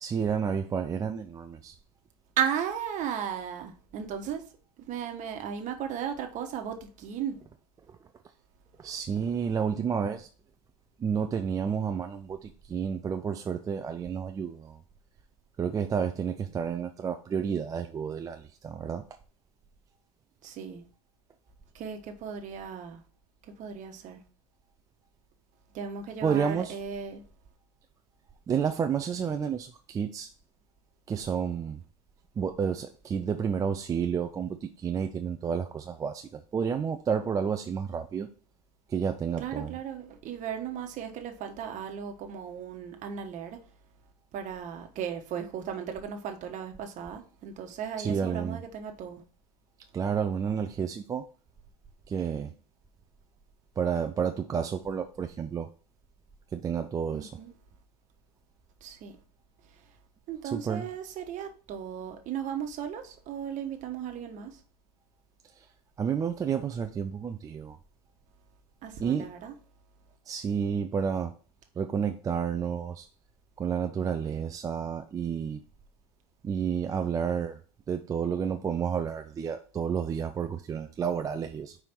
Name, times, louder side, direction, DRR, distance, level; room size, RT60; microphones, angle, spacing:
voice 1, 0.0-1.8 8.8-10.3 11.0-14.8 15.6-19.0 26.2-26.8 28.5-30.3 31.1-31.8 32.4-38.3 38.9-39.7 48.0-48.6 49.9-51.3 52.1-52.5 53.8-55.7 56.5-57.4 60.4-60.9 65.6-65.7 66.0-67.8 69.0-69.3 70.3-71.3 71.8-73.1 73.6-75.6 76.4-77.6 77.9-81.8, right 7 dB, 15° right, 0.4 m, -30 dB
voice 2, 2.4-4.4 4.8-7.4 20.4-20.8 21.7-23.0 23.5-24.2 25.7-27.2 39.4-43.6 44.3-49.2 57.1-57.5 58.8-59.1 60.3-64.6 68.8-69.5, right 8 dB, 40° right, 1.2 m, -36 dB
5.1 x 4.7 x 4.5 m
supercardioid pair, 115°, 20 cm